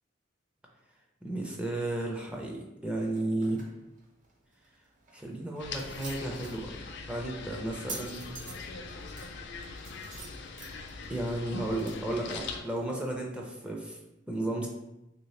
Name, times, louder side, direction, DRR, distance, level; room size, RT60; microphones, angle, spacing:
voice 1, 1.2-3.6 5.1-8.3 11.1-14.0 14.3-14.7, right 1 dB, 5° right, -1 dB, 0.4 m, -33 dB
sound 1, 3.0-13.1, right 3 dB, 45° right, 0.6 m, -49 dB
sound 2, 5.6-12.6, left 4 dB, 65° left, 0.4 m, -42 dB
3.1 x 2.7 x 3.1 m, 0.91 s
head